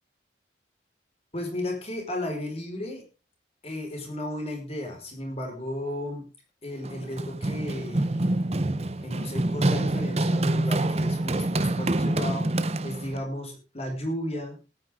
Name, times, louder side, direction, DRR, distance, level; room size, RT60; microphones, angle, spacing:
voice 1, 1.3-3.0 3.6-6.2 6.6-8.3 9.0-12.5 12.8-14.6, left 1 dB, 35° left, 2 dB, 4.7 m, -34 dB
Run, 6.8-13.2, right 2 dB, 35° right, 0.8 m, -26 dB
19.5 x 9.6 x 3.6 m, 0.32 s
head